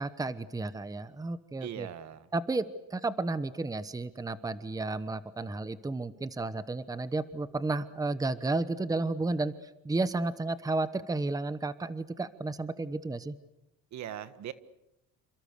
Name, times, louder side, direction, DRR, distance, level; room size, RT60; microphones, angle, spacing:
voice 1, 0.0-1.9 2.3-2.6 2.9-9.5 9.8-13.3, right 3 dB, 10° right, 13 dB, 1.1 m, -32 dB
voice 2, 1.6-2.3 13.9-14.5, right 11 dB, 60° right, 13 dB, 1.6 m, -40 dB
28.5 x 26.0 x 6.8 m, 0.89 s
cardioid pair, 125°, 32 cm